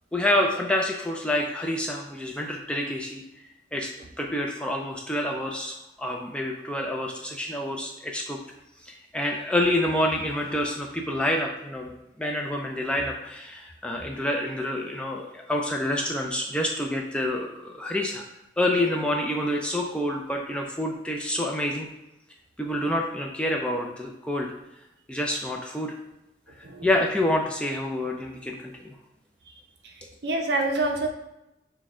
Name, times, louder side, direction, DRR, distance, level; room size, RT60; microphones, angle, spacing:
voice 1, 0.1-3.2 3.7-3.9 4.2-8.4 8.8-11.9 12.2-18.2 18.6-21.9 22.6-24.5 25.1-25.9 26.8-28.9, left 1 dB, 5° left, 1 dB, 0.4 m, -27 dB
voice 2, 30.2-31.1, right 2 dB, 65° right, 2 dB, 0.7 m, -26 dB
6.3 x 2.3 x 3.6 m, 0.91 s
head